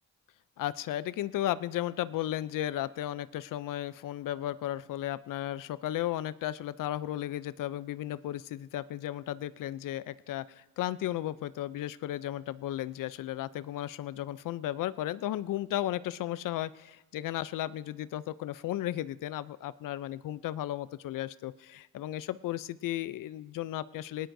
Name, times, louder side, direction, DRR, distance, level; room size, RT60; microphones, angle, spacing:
voice 1, 0.6-24.3, left 13 dB, 75° left, 17 dB, 0.5 m, -34 dB
19.5 x 17.5 x 2.6 m, 1.1 s
cardioid pair, 75°, 32 cm